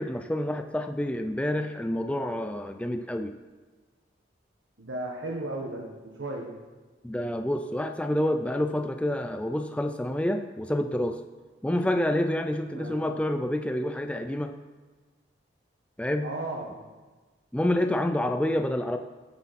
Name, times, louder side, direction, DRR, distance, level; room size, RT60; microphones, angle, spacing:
voice 1, 0.0-3.3 7.0-11.2 11.6-14.5 16.0-16.3 17.5-19.0, left 1 dB, 5° left, 6 dB, 0.4 m, -28 dB
voice 2, 4.8-6.6 12.7-13.0 16.2-16.8, right 2 dB, 80° right, 0 dB, 1.3 m, -35 dB
15.5 x 8.2 x 4.2 m, 1.3 s
head